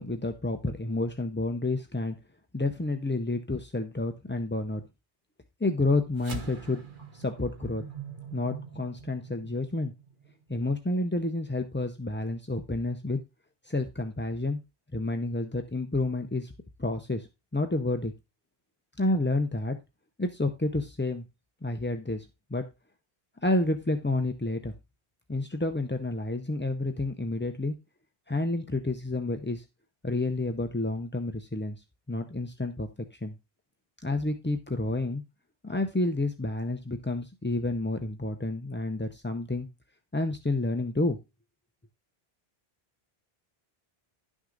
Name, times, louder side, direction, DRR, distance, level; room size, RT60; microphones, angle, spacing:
voice 1, 0.0-2.2 2.5-4.8 5.6-6.8 7.1-7.8 8.3-9.9 10.5-13.2 13.6-14.6 14.9-16.5 16.8-17.3 17.5-18.1 19.0-19.8 20.2-21.3 21.6-22.3 22.5-22.7 23.4-24.7 25.3-27.8 28.3-29.6 30.0-33.4 34.0-35.2 35.6-39.7 40.1-41.2, left 2 dB, 15° left, 6 dB, 0.5 m, -29 dB
sound 1, 6.2-10.8, right 5 dB, 50° right, 1.3 m, -43 dB
11.5 x 6.2 x 3.8 m, 0.26 s
omnidirectional pair, 1.1 m